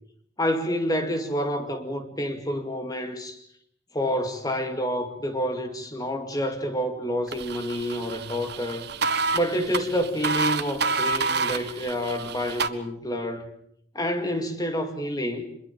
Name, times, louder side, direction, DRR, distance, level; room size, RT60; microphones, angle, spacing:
voice 1, 0.4-3.4 3.9-8.9 9.3-13.5 13.9-15.4, equal, 20° left, 2.2 m, -28 dB
sound 1, 7.3-12.7, right 4 dB, 55° right, 1.3 m, -28 dB
25.0 x 22.5 x 7.2 m
head